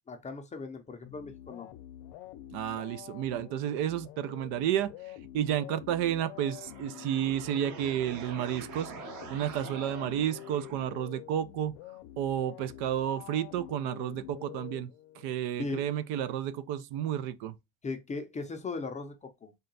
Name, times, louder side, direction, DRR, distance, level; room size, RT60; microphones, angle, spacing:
voice 1, 0.1-1.7 15.6-15.9 17.8-19.5, left 3 dB, 20° left, 0.4 m, -38 dB
sound 1, 1.0-15.4, left 13 dB, 90° left, 0.6 m, -47 dB
voice 2, 2.5-8.9 9.3-11.7 12.2-14.9 15.2-17.5, right 10 dB, 75° right, 0.6 m, -31 dB
sound 2, 6.2-11.2, right 5 dB, 45° right, 1.0 m, -46 dB
3.8 x 2.2 x 3.9 m
cardioid pair, 145°, 41 cm